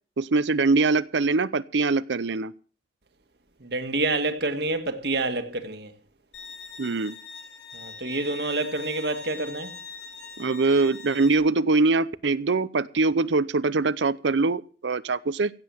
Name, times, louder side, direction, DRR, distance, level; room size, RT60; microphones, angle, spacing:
voice 1, 0.2-2.5 6.8-7.1 10.4-15.5, right 3 dB, 80° right, 0.6 m, -23 dB
voice 2, 3.6-5.9 7.7-9.7, right 2 dB, 65° right, 1.8 m, -28 dB
Bowed string instrument, 6.3-11.4, left 4 dB, 85° left, 6.4 m, -42 dB
16.0 x 7.7 x 7.7 m
head